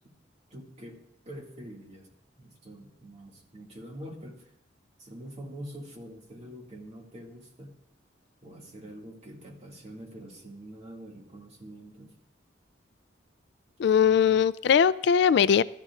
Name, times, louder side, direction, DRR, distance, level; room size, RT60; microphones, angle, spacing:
voice 1, 0.5-2.1 2.4-4.5 5.0-7.8 8.4-12.1, right 1 dB, 35° right, 1 dB, 2.1 m, -45 dB
voice 2, 13.8-15.6, left 7 dB, 65° left, 16 dB, 0.3 m, -20 dB
19.0 x 13.0 x 2.5 m, 0.80 s
head